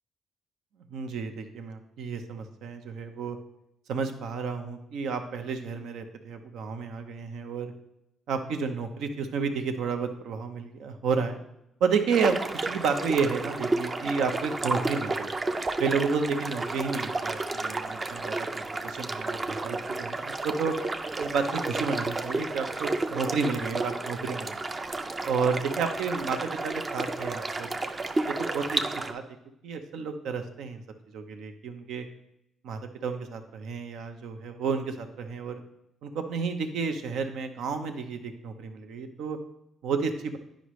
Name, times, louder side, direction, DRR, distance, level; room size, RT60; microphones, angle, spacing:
voice 1, 0.9-3.4 3.9-7.7 8.3-11.4 11.8-12.4 12.6-15.3 15.8-20.8 21.2-24.6 25.2-27.8 28.3-29.2 29.6-30.8 31.1-32.0 32.6-35.6 36.0-39.4 39.8-40.4, right 5 dB, 80° right, 7 dB, 0.7 m, -31 dB
sound 1, 12.1-29.1, right 2 dB, 30° right, 0.6 m, -32 dB
9.8 x 5.1 x 3.1 m, 0.83 s
cardioid pair, 90°, 0 cm